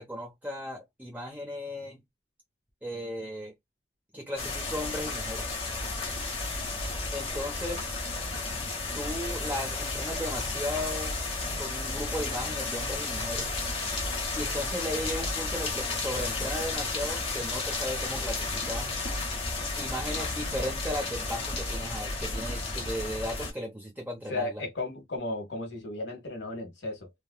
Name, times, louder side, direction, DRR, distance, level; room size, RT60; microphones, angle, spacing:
voice 1, 0.0-2.0 2.8-3.5 4.1-5.5 7.1-8.1 8.9-11.2 11.6-13.5 14.3-18.9 19.8-24.6, equal, 10° right, 0.9 m, -36 dB
sound 1, 4.4-23.5, left 3 dB, 35° left, 0.9 m, -32 dB
voice 2, 24.3-27.1, left 2 dB, 85° left, 1.1 m, -35 dB
3.3 x 2.4 x 2.2 m
head